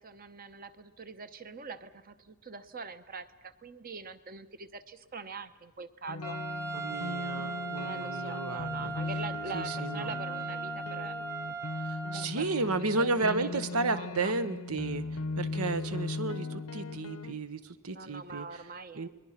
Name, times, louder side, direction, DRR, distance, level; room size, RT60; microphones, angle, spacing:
voice 1, 0.0-6.4 7.8-11.2 12.1-14.3 17.9-19.1, right 4 dB, 40° right, 11 dB, 0.9 m, -44 dB
sound 1, 6.1-17.3, left 3 dB, 85° left, 0.9 m, -38 dB
Trumpet, 6.2-12.3, right 5 dB, 15° right, 0.8 m, -38 dB
voice 2, 6.7-8.9 9.5-10.1 11.8-15.1 15.4-18.5 18.9-19.1, right 3 dB, 85° right, 12 dB, 1.1 m, -33 dB
29.0 x 20.5 x 5.8 m, 1.1 s
head